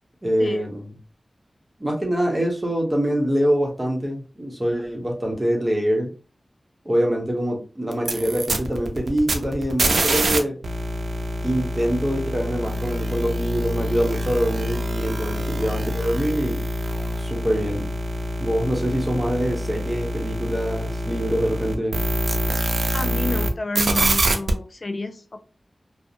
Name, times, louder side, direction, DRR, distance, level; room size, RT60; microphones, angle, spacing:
voice 1, 0.2-0.9 1.8-6.1 6.8-10.6 11.4-16.6 17.2-17.9 18.4-22.0, equal, 25° right, 0 dB, 0.8 m, -24 dB
sound 1, 7.9-10.4 10.6-23.5 23.7-24.5, right 1 dB, 85° right, 0.4 m, -25 dB
voice 2, 22.9-25.4, left 2 dB, 50° left, 8 dB, 0.4 m, -30 dB
2.6 x 2.0 x 2.5 m, 0.35 s
wide cardioid pair, 60°, 0 cm